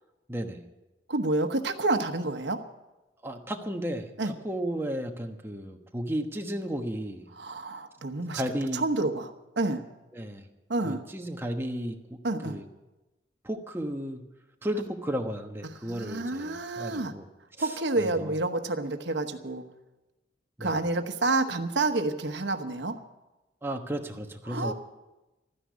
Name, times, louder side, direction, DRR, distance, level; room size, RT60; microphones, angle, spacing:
voice 1, 0.3-0.6 3.2-7.3 8.3-8.8 10.1-10.5 10.8-12.2 12.4-12.7 13.4-14.2 14.6-17.3 18.0-18.3 20.6-20.8 23.6-24.7, equal, 15° right, 4 dB, 1.2 m, -33 dB
voice 2, 1.1-2.6 4.2-4.3 7.3-8.4 8.7-9.9 10.7-11.1 12.2-12.6 15.6-17.1 17.6-19.7 20.6-23.0 24.5-24.7, right 2 dB, 80° right, 7 dB, 1.1 m, -29 dB
13.5 x 10.0 x 9.6 m, 1.0 s
head